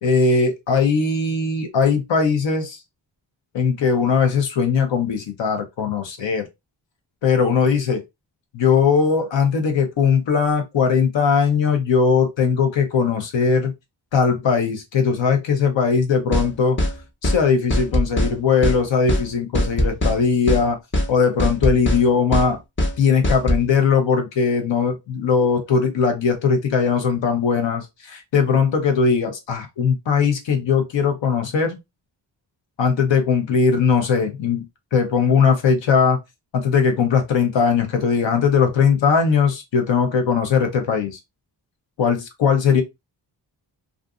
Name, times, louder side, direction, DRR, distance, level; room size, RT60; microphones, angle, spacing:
voice 1, 0.0-2.8 3.5-6.5 7.2-8.0 8.5-13.7 14.1-16.8 17.2-20.8 21.1-22.6 23.0-31.8 32.8-36.2 36.5-41.2 42.0-42.8, left 5 dB, 85° left, 0.8 m, -19 dB
sound 1, 16.3-16.5 16.8-16.9 17.2-17.4 17.7-18.3 18.6-18.8 19.1-19.2 19.5-20.2 20.5-20.6 20.9-21.1 21.4-22.0 22.3-22.5 22.8-22.9 23.2-23.6, left 1 dB, 25° left, 0.7 m, -20 dB
2.5 x 2.5 x 2.4 m
cardioid pair, 85°, 44 cm